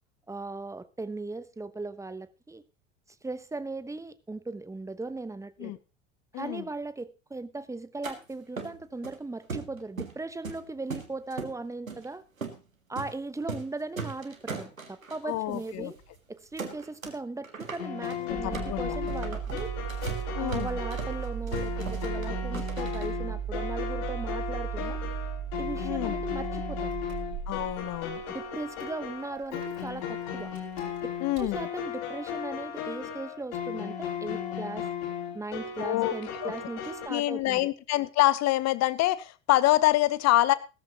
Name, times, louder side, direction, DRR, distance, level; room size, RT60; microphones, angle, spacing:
voice 1, 0.3-2.6 3.2-5.7 6.3-12.2 12.9-16.0 16.3-19.7 20.4-25.0 25.6-26.9 28.3-30.5 31.0-31.1 31.4-34.9 35.3-37.7, right 3 dB, 10° right, 13 dB, 1.0 m, -38 dB
sound 1, 8.0-8.2 8.6-9.2 9.5-10.2 10.4-11.5 11.9-12.1 12.4-12.6 13.0-13.1 13.4-13.7 14.0-15.2 15.6-15.7 16.0-16.2 16.6-17.2 17.4-23.1, right 4 dB, 90° right, 1.8 m, -38 dB
voice 2, 15.2-15.9 18.2-19.0 20.4-20.7 25.8-26.2 27.5-28.2 31.2-31.7 35.8-36.1 36.4-36.5 37.1-40.5, left 16 dB, 40° left, 17 dB, 1.0 m, -26 dB
sound 2, 17.8-37.1, left 8 dB, 60° left, 3.0 m, -36 dB
Engine starting, 18.3-31.6, right 8 dB, 45° right, 4.6 m, -36 dB
16.5 x 13.5 x 2.9 m, 0.31 s
figure-of-eight pair, 70°, 39 cm